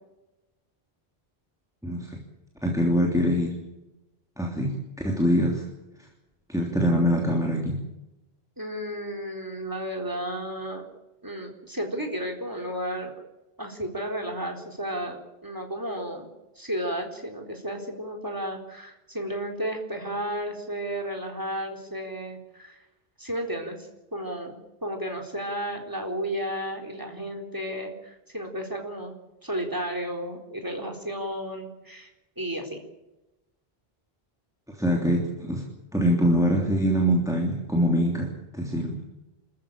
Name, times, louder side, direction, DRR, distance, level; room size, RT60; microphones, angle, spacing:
voice 1, 1.8-2.2 2.6-3.6 4.4-5.6 6.5-7.8 34.7-35.6 35.9-39.0, equal, 5° right, 0 dB, 3.2 m, -24 dB
voice 2, 8.6-10.8 11.2-13.1 13.6-16.3 16.6-22.8 23.2-24.5 24.8-29.1 29.4-32.1 32.4-32.8, equal, 20° right, 4 dB, 4.0 m, -33 dB
28.0 x 14.0 x 9.0 m, 0.98 s
omnidirectional pair, 1.0 m